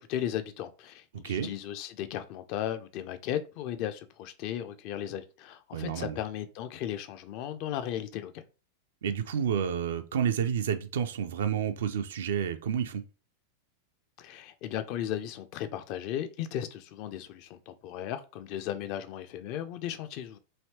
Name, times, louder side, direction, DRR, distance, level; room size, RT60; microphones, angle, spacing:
voice 1, 0.0-8.4 14.2-20.4, left 11 dB, 45° left, 0.4 m, -36 dB
voice 2, 5.7-6.2 9.0-13.0, right 8 dB, 60° right, 0.4 m, -30 dB
3.2 x 2.7 x 2.8 m
figure-of-eight pair, 90°, 0 cm